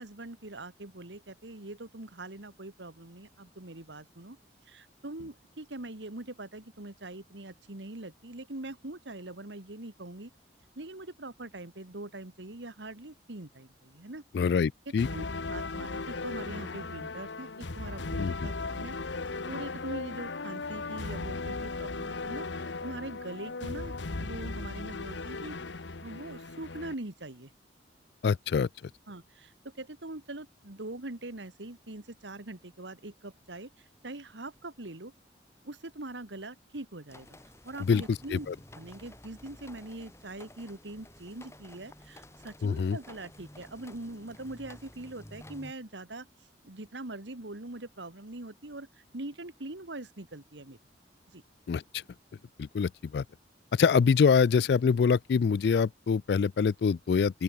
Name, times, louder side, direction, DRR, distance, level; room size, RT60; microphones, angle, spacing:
voice 1, 0.0-4.4 4.7-10.3 10.8-14.2 14.9-15.2 15.5-19.0 19.5-23.9 24.2-25.6 26.0-27.5 29.1-35.1 35.6-38.5 38.7-46.3 46.6-50.8 51.3-51.4, right 2 dB, 80° right, 2.1 m, -42 dB
voice 2, 14.3-15.1 18.2-18.3 28.2-28.7 37.9-38.6 42.6-43.0 51.7-51.8 52.6-53.2 53.7-57.4, left 5 dB, 60° left, 0.3 m, -25 dB
sound 1, 15.0-26.9, left 3 dB, 85° left, 1.2 m, -37 dB
sound 2, 37.1-45.7, left 1 dB, 15° left, 3.7 m, -52 dB
open air
head